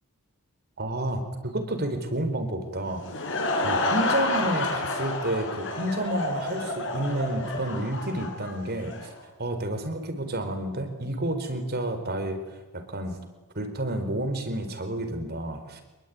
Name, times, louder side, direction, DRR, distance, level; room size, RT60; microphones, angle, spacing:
voice 1, 0.8-3.0 3.6-9.1 9.4-13.2 13.5-15.8, right 1 dB, 45° right, 8 dB, 4.5 m, -30 dB
Laughter / Crowd, 2.8-9.1, left 2 dB, 60° left, 6.3 m, -29 dB
26.5 x 22.0 x 9.7 m, 1.1 s
head